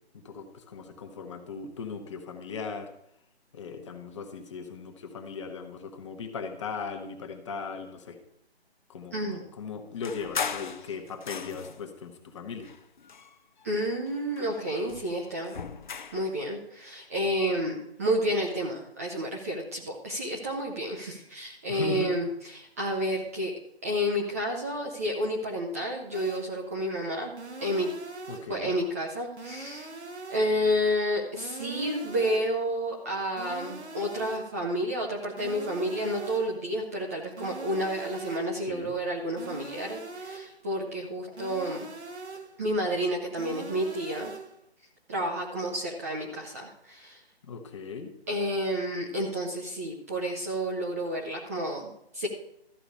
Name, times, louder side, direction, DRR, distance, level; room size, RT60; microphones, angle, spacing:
voice 1, 0.1-2.9 3.5-8.2 8.9-12.7 21.7-22.1 28.3-28.7 38.7-38.9 47.5-48.1, left 5 dB, 25° left, 6 dB, 1.3 m, -38 dB
voice 2, 9.1-9.4 13.6-15.6 16.1-23.5 23.8-27.3 27.6-27.9 28.5-29.9 30.3-41.9 42.6-44.3 45.1-47.2 48.3-52.3, equal, 15° right, -1 dB, 0.7 m, -30 dB
sound 1, 10.0-11.9 12.6-13.7 14.1-16.3, left 6 dB, 45° left, 0.8 m, -38 dB
sound 2, 26.1-26.6 27.4-28.6 29.4-30.6 31.4-32.6 33.4-34.6 35.4-36.6 37.4-38.6 39.4-40.6 41.4-42.6 43.4-44.6, right 3 dB, 85° right, 1.6 m, -42 dB
13.0 x 5.0 x 8.3 m, 0.76 s
figure-of-eight pair, 155°, 33 cm